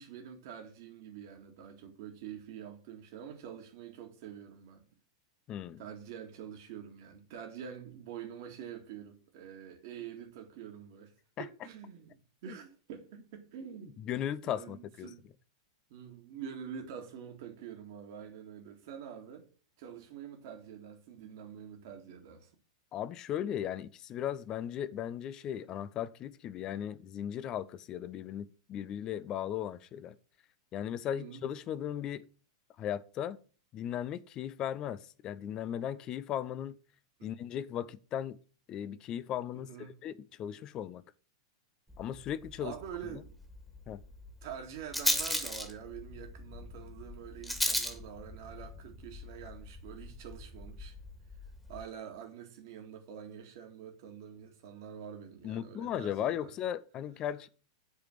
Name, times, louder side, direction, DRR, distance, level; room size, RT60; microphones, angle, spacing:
voice 1, 0.0-4.8 5.8-11.1 11.4-14.0 14.4-15.2 15.9-19.5 19.8-22.5 31.1-31.4 37.2-37.4 39.5-40.0 42.6-43.3 44.4-51.0 51.7-56.5, right 8 dB, 50° right, 1.9 m, -46 dB
voice 2, 5.5-5.8 11.4-11.5 12.5-12.6 14.0-15.1 22.9-30.1 30.7-32.3 32.8-33.4 33.7-36.8 37.2-38.4 38.7-39.7 40.0-41.0 42.0-42.7 43.1-43.2 43.9-44.0 55.4-57.5, left 10 dB, 30° left, 0.7 m, -37 dB
Rattle, 41.9-51.8, equal, 5° left, 2.0 m, -38 dB
8.3 x 5.0 x 7.5 m
figure-of-eight pair, 95°, 2 cm